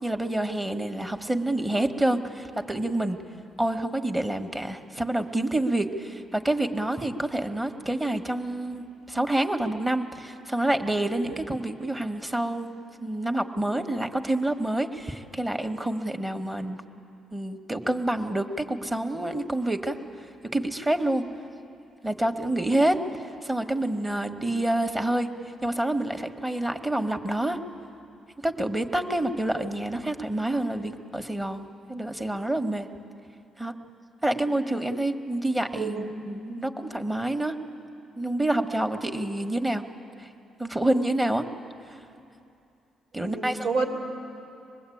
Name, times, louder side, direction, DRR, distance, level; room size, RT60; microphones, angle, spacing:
voice 1, 0.0-3.2 3.6-16.8 17.3-20.0 20.5-21.2 22.0-25.3 25.6-27.6 28.4-32.9 33.6-33.7 34.2-37.6 38.2-39.8 40.2-40.3 40.6-41.4 41.9-42.0 43.1-43.7, right 1 dB, 10° right, 6 dB, 1.4 m, -27 dB
voice 2, 35.7-36.1 39.4-39.5 43.1-43.9, right 4 dB, 85° right, 1 dB, 3.0 m, -29 dB
24.5 x 20.0 x 8.6 m, 2.6 s
cardioid pair, 90°, 0 cm